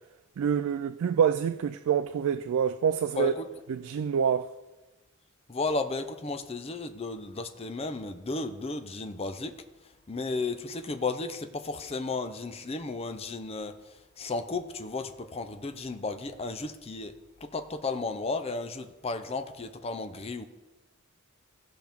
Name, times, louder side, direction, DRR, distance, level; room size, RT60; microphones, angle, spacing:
voice 1, 0.4-3.3 3.7-4.5, right 7 dB, 75° right, 0.3 m, -26 dB
voice 2, 3.2-3.5 5.5-9.5 10.1-13.7 14.2-17.1 17.4-20.4, left 3 dB, 30° left, 0.5 m, -34 dB
15.5 x 5.9 x 3.5 m
head